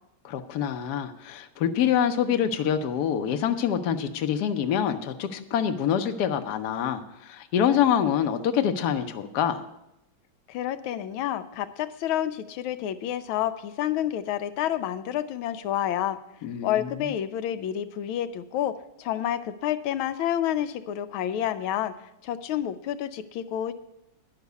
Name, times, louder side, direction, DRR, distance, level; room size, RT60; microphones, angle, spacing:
voice 1, 0.2-9.6 16.4-17.1, left 9 dB, 65° left, 7 dB, 1.1 m, -26 dB
voice 2, 10.5-16.2 16.6-21.9 22.2-23.7, left 11 dB, 85° left, 10 dB, 1.4 m, -29 dB
10.5 x 5.8 x 8.0 m, 0.87 s
omnidirectional pair, 2.2 m